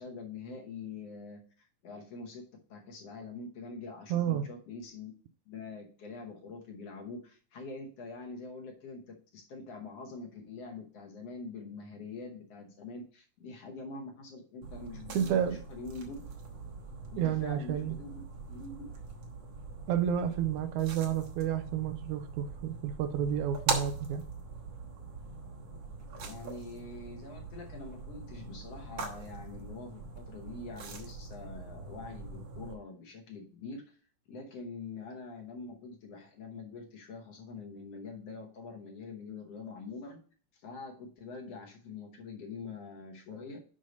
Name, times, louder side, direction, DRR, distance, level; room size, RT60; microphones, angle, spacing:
voice 1, 0.0-2.4 2.7-5.1 5.5-16.2 17.1-18.2 18.5-18.9 26.2-34.0 34.3-40.2 40.5-43.6, left 3 dB, 60° left, 1 dB, 1.9 m, -45 dB
voice 2, 4.1-4.5 15.1-15.6 17.2-18.0 19.9-24.2, right 9 dB, 80° right, 9 dB, 1.9 m, -30 dB
sound 1, 14.6-32.7, right 5 dB, 65° right, 2.2 m, -42 dB
6.4 x 5.5 x 5.2 m, 0.41 s
omnidirectional pair, 3.6 m